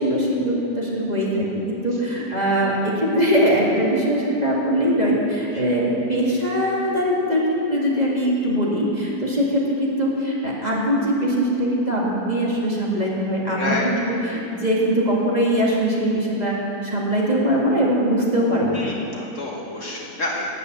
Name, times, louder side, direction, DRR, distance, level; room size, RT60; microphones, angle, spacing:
voice 1, 0.0-16.6 16.8-18.8, equal, 25° right, -5 dB, 2.1 m, -21 dB
voice 2, 13.5-14.1 18.7-20.5, left 2 dB, 50° left, -2 dB, 1.7 m, -28 dB
12.0 x 9.2 x 7.9 m, 2.9 s
omnidirectional pair, 1.8 m